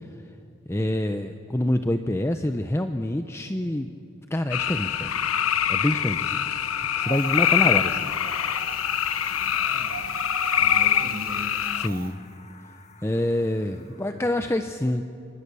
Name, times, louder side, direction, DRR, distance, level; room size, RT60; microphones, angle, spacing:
voice 1, 0.7-3.9 4.3-5.1 5.7-6.5 6.9-8.1 11.8-12.2 13.0-15.0, left 1 dB, 15° left, 7 dB, 0.6 m, -26 dB
sound 1, 4.5-11.9, left 10 dB, 85° left, 0.8 m, -24 dB
sound 2, 4.6-14.3, left 4 dB, 30° left, 1.3 m, -45 dB
Wind, 7.0-12.1, right 6 dB, 45° right, 1.0 m, -39 dB
voice 2, 9.3-10.0 10.6-11.5 13.6-14.3, left 1 dB, 20° right, 1 dB, 4.9 m, -41 dB
27.0 x 26.0 x 6.9 m, 2.5 s
head